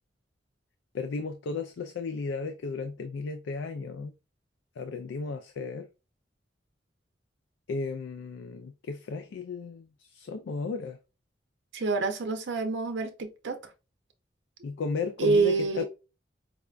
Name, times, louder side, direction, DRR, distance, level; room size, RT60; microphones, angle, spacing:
voice 1, 0.9-4.1 4.8-5.9 7.7-11.0 14.6-15.8, left 4 dB, 80° left, 0.3 m, -34 dB
voice 2, 11.7-13.6 15.2-15.8, right 4 dB, 75° right, 0.5 m, -27 dB
4.8 x 2.2 x 2.4 m
head